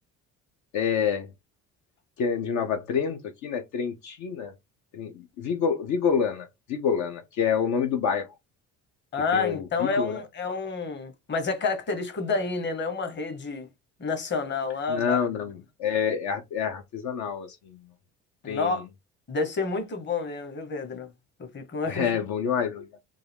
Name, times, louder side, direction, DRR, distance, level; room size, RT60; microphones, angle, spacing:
voice 1, 0.7-1.3 2.2-4.5 4.9-5.1 5.4-8.3 9.3-10.2 14.9-17.8 18.5-18.8 21.9-22.9, left 7 dB, 70° left, 0.8 m, -27 dB
voice 2, 9.1-13.7 14.0-15.2 18.4-18.8 19.3-21.1 21.4-22.2, left 4 dB, 35° left, 1.1 m, -29 dB
3.7 x 2.4 x 3.4 m
cardioid pair, 110°, 30 cm